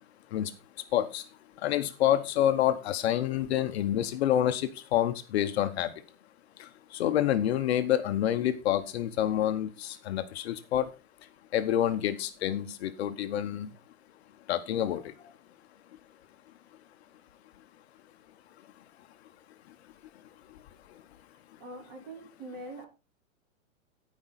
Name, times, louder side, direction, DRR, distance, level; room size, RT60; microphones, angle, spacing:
voice 1, 0.9-1.2 1.6-5.9 6.6-10.9 11.5-13.7 14.5-15.3, left 11 dB, 50° left, 9 dB, 1.0 m, -28 dB
voice 2, 21.6-22.9, right 1 dB, 35° right, 1 dB, 4.5 m, -43 dB
15.5 x 5.4 x 4.1 m, 0.31 s
hypercardioid pair, 155°, 41 cm